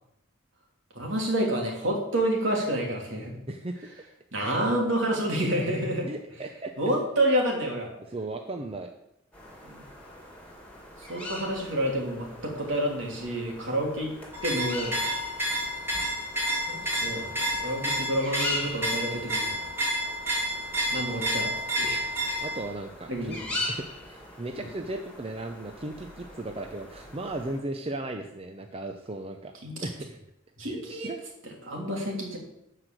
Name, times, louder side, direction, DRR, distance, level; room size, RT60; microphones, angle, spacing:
voice 1, 0.9-3.3 4.3-6.1 6.8-7.9 9.6-9.9 11.0-14.1 14.4-15.1 16.7-19.7 20.9-21.5 21.8-22.1 23.1-23.6 24.6-24.7 29.6-29.9 30.6-31.1 31.4-32.4, right 1 dB, 65° right, 0 dB, 3.0 m, -29 dB
voice 2, 3.5-3.8 6.0-6.7 8.1-8.9 22.4-23.4 23.7-29.5 29.8-30.2 30.7-31.2, right 2 dB, 30° right, 5 dB, 0.7 m, -36 dB
sound 1, 9.3-27.6, left 2 dB, 5° left, 2.5 m, -41 dB
sound 2, 14.3-22.6, equal, 10° right, 2.9 m, -30 dB
12.5 x 5.0 x 7.6 m, 0.81 s
head